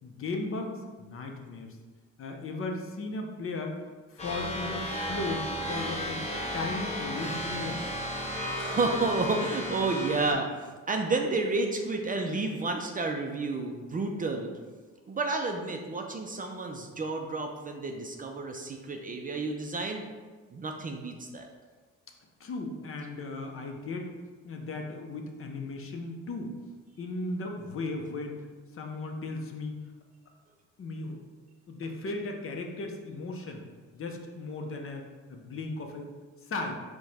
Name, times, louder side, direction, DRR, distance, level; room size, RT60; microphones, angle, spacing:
voice 1, 0.0-1.8 2.2-3.8 4.1-6.2 6.5-7.8 22.4-24.1 24.4-26.5 27.0-28.4 28.7-29.8 30.8-31.2 31.7-33.6 33.9-36.1 36.4-36.8, left 2 dB, 45° left, 3 dB, 0.6 m, -36 dB
sound 1, 4.2-10.3, equal, 20° left, 0.9 m, -34 dB
voice 2, 8.6-10.5 10.9-14.5 15.1-20.1 20.5-21.5, right 3 dB, 30° right, 3 dB, 0.4 m, -30 dB
4.6 x 2.2 x 4.1 m, 1.4 s
cardioid pair, 90°, 30 cm